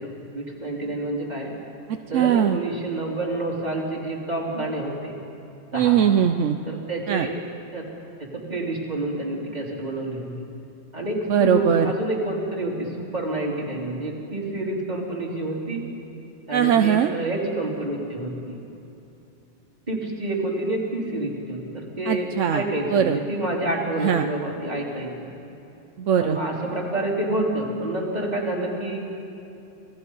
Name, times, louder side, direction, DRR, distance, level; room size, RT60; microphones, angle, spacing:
voice 1, 0.0-1.5 2.1-5.1 5.7-6.0 6.7-7.4 7.7-7.9 8.2-10.3 10.9-15.8 16.5-18.6 19.9-25.3 26.2-29.0, right 1 dB, 35° right, -3 dB, 3.5 m, -28 dB
voice 2, 2.1-2.6 5.7-6.6 7.1-7.3 11.3-11.8 16.5-17.1 22.1-22.6 22.9-23.2 24.0-24.2 26.0-26.4, right 9 dB, 80° right, 7 dB, 1.0 m, -20 dB
27.0 x 17.5 x 5.5 m, 2.8 s
omnidirectional pair, 1.3 m